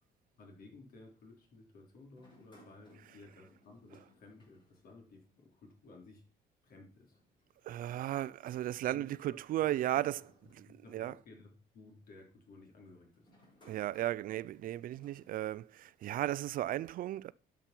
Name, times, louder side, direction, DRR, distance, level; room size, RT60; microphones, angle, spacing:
voice 1, 0.4-6.2 6.6-7.2 8.9-9.3 9.9-10.0 10.7-13.3, left 3 dB, 60° left, 3.9 m, -56 dB
sound 1, 2.1-5.5 5.8-5.9 7.0-11.2 11.9-12.2 13.1-16.4, left 1 dB, 25° left, 5.9 m, -66 dB
voice 2, 7.6-11.2 13.6-17.3, right 13 dB, 55° right, 0.4 m, -35 dB
11.0 x 6.0 x 6.0 m
cardioid pair, 110°, 17 cm